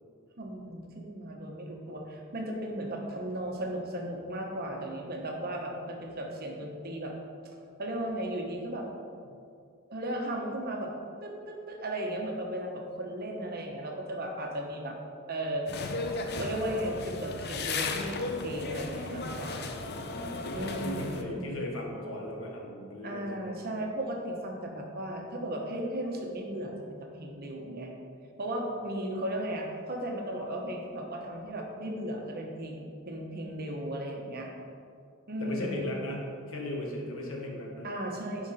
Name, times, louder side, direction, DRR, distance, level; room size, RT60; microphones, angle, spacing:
voice 1, 0.4-7.1 7.8-8.9 9.9-10.9 11.2-15.0 15.3-15.8 16.1-19.7 20.5-21.4 23.0-27.9 28.4-34.5 35.3-35.8 37.8-38.5, right 1 dB, 50° right, 1 dB, 1.2 m, -36 dB
sound 1, 15.7-21.2, left 3 dB, 55° left, 0.6 m, -35 dB
voice 2, 19.7-23.5 35.4-37.9, left 1 dB, 70° left, 0 dB, 1.5 m, -37 dB
10.0 x 5.2 x 4.2 m, 2.4 s
head